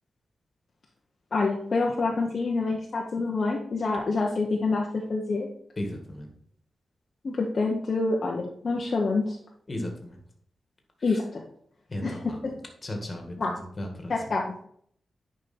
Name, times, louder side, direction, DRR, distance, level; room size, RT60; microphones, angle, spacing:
voice 1, 1.3-5.5 7.2-9.4 11.0-11.2 12.0-12.1 12.4-12.5 13.4-13.5 14.1-14.5, left 3 dB, 45° left, -1 dB, 1.1 m, -27 dB
voice 2, 5.8-6.3 9.7-10.2 11.1-11.2 11.9-12.4 12.8-14.1, left 1 dB, 30° left, 2 dB, 1.9 m, -35 dB
10.0 x 5.3 x 4.3 m, 0.65 s
wide cardioid pair, 140°, 0 cm